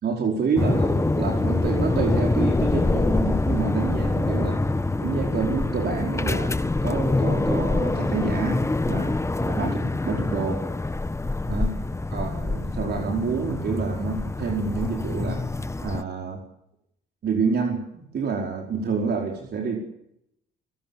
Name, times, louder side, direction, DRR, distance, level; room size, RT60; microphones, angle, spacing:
voice 1, 0.0-4.6 5.0-10.6 11.5-11.8 12.1-15.4 15.8-16.4 17.2-19.8, right 5 dB, 55° right, 1 dB, 5.0 m, -28 dB
sound 1, 0.6-16.0, left 2 dB, 15° left, 1.1 m, -25 dB
28.5 x 17.0 x 7.4 m, 0.78 s
cardioid pair, 90°, 20 cm